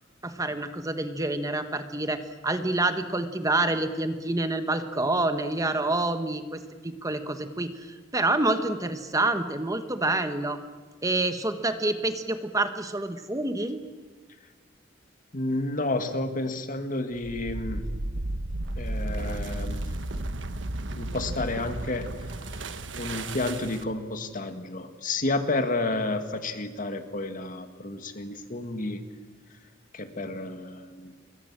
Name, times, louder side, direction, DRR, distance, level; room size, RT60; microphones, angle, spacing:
voice 1, 0.2-7.9 8.1-10.6 11.0-13.8, right 2 dB, 20° right, 8 dB, 1.2 m, -27 dB
voice 2, 15.3-17.8 18.8-19.8 21.0-22.1 22.5-22.6 23.0-29.0 29.9-31.1, left 2 dB, 45° left, 8 dB, 2.0 m, -31 dB
sound 1, 17.2-24.0, right 1 dB, 70° right, 1.3 m, -33 dB
27.0 x 22.5 x 7.5 m, 1.4 s
head